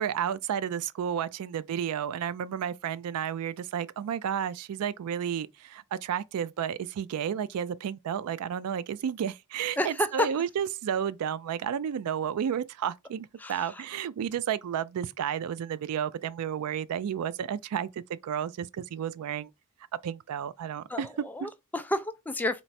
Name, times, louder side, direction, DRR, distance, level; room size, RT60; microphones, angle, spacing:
voice 1, 0.0-19.5 20.0-21.1, right 8 dB, 90° right, 0.3 m, -32 dB
voice 2, 9.8-10.3 13.4-13.8 20.9-22.6, left 1 dB, 10° left, 0.3 m, -31 dB
4.5 x 2.0 x 4.1 m
head